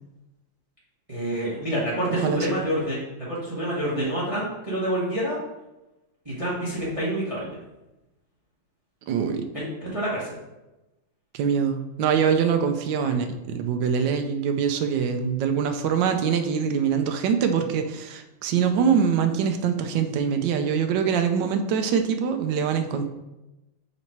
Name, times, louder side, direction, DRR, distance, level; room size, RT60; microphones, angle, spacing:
voice 1, 1.1-3.0 3.3-5.4 6.2-7.5 9.5-10.4 13.0-13.2, right 1 dB, 20° right, -7 dB, 1.3 m, -27 dB
voice 2, 2.2-2.6 9.1-9.5 11.3-23.1, right 7 dB, 70° right, 7 dB, 1.1 m, -24 dB
5.8 x 4.1 x 4.6 m, 1.0 s
omnidirectional pair, 2.4 m